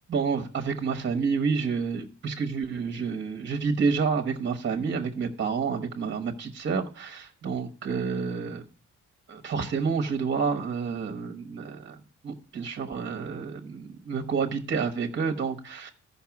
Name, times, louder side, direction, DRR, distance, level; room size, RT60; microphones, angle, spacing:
voice 1, 0.1-8.6 9.3-12.0 12.2-15.9, right 5 dB, 40° right, 1.2 m, -29 dB
14.0 x 5.6 x 5.9 m
wide cardioid pair, 150°, 29 cm